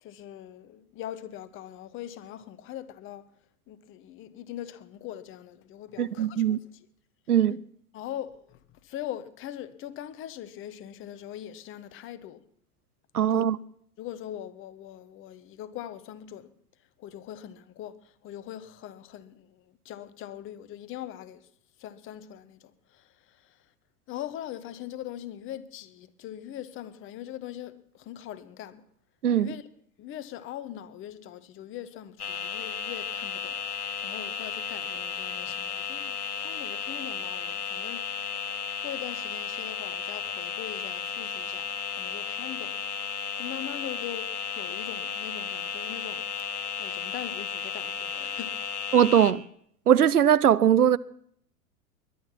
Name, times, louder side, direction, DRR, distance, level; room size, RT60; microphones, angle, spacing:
voice 1, 0.0-3.2 3.7-6.9 7.9-12.4 13.3-13.5 14.0-16.5 17.0-21.5 21.8-23.7 24.1-28.8 29.3-29.7 30.0-33.6 34.0-38.1 38.8-46.3 46.8-48.6, left 11 dB, 25° left, 1.1 m, -41 dB
voice 2, 6.0-6.6 7.3-7.6 13.1-13.6 29.2-29.5 48.9-49.4 49.9-51.0, right 9 dB, 75° right, 0.7 m, -20 dB
sound 1, 32.2-49.3, left 6 dB, 70° left, 1.5 m, -34 dB
21.5 x 11.0 x 5.9 m
figure-of-eight pair, 90°, 46 cm